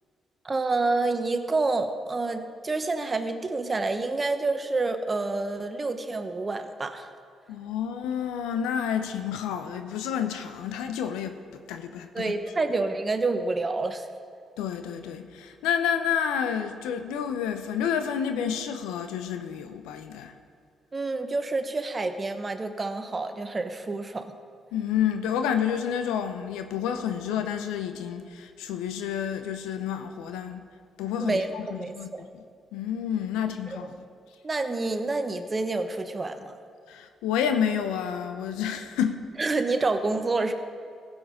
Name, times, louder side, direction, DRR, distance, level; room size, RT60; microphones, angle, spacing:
voice 1, 0.4-7.1 12.1-14.1 20.9-24.3 31.2-32.3 33.7-33.8 34.4-36.5 39.4-40.5, right 3 dB, 30° right, 8 dB, 1.1 m, -28 dB
voice 2, 7.5-11.4 11.7-12.3 14.6-20.3 24.7-30.6 31.0-32.4 32.7-33.9 36.9-39.2, left 8 dB, 85° left, 8 dB, 0.7 m, -29 dB
15.5 x 7.2 x 5.1 m, 2.1 s
supercardioid pair, 55°, 0 cm